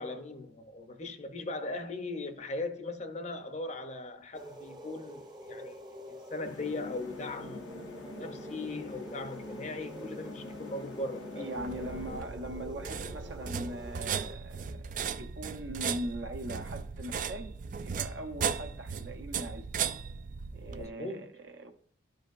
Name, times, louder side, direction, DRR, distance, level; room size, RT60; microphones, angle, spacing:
voice 1, 0.0-5.8 6.1-7.7 8.2-11.5 20.7-21.3, left 2 dB, 35° left, 0.6 m, -39 dB
sound 1, 4.3-14.3, equal, 20° right, 0.7 m, -46 dB
sound 2, 6.4-12.2, left 2 dB, 75° left, 0.6 m, -45 dB
voice 2, 11.4-17.5 17.8-19.7 20.5-21.7, right 1 dB, 70° right, 0.9 m, -40 dB
sound 3, 11.6-20.9, right 7 dB, 45° right, 0.3 m, -37 dB
12.0 x 5.1 x 2.5 m
head